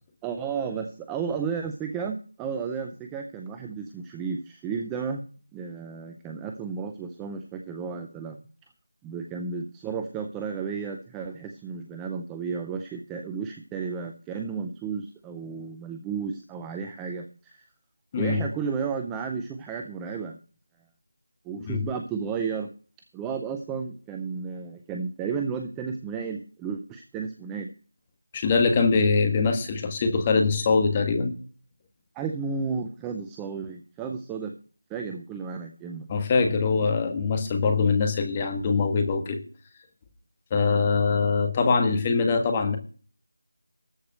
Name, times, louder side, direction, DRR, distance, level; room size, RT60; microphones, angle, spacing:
voice 1, 0.2-5.2 5.5-8.4 9.0-17.7 18.2-20.4 21.4-22.7 23.1-27.7 32.1-34.5 34.9-36.1, right 5 dB, 5° right, 5 dB, 0.5 m, -33 dB
voice 2, 28.3-31.3 36.1-39.4 40.5-42.8, left 4 dB, 15° left, 5 dB, 1.5 m, -23 dB
13.5 x 4.9 x 7.9 m, 0.37 s
figure-of-eight pair, 175°, 0 cm